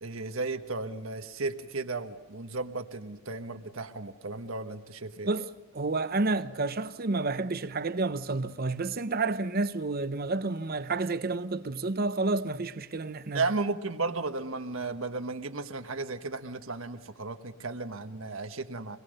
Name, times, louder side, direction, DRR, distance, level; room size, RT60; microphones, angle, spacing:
voice 1, 0.0-5.3 13.3-19.0, right 3 dB, 80° right, 1.3 m, -34 dB
voice 2, 5.2-13.5, right 3 dB, 45° right, 0.8 m, -30 dB
25.5 x 21.5 x 6.6 m
head